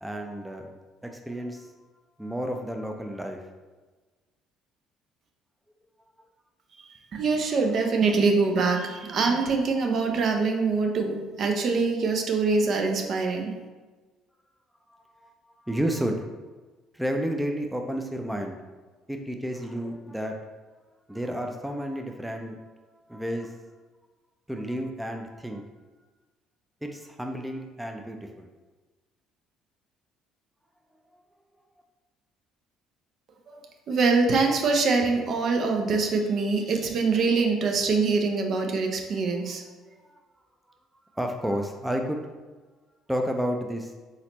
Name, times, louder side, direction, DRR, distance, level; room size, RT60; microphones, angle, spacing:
voice 1, 0.0-0.7 1.0-1.7 2.2-3.4 15.2-15.3 15.6-16.3 16.9-18.6 19.1-20.4 21.1-22.6 23.1-23.5 24.5-25.6 26.8-28.5 40.1-40.2 41.2-42.3 43.1-43.9, equal, 5° right, 3 dB, 0.5 m, -31 dB
voice 2, 6.9-13.5 33.5-33.6 33.9-39.6, right 4 dB, 50° right, 3 dB, 0.6 m, -24 dB
4.1 x 4.1 x 2.9 m, 1.3 s
figure-of-eight pair, 50°, 0 cm